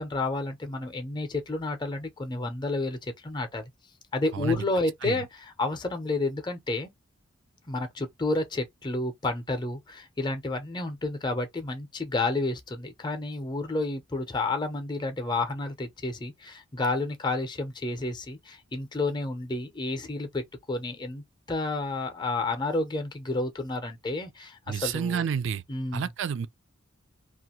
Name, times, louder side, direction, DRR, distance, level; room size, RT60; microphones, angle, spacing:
voice 1, 0.0-3.7 4.1-6.9 7.7-25.3 25.7-26.1, left 2 dB, 20° left, 0.6 m, -30 dB
voice 2, 24.7-25.6 25.9-26.5, right 7 dB, 65° right, 0.4 m, -29 dB
2.6 x 2.4 x 2.9 m
head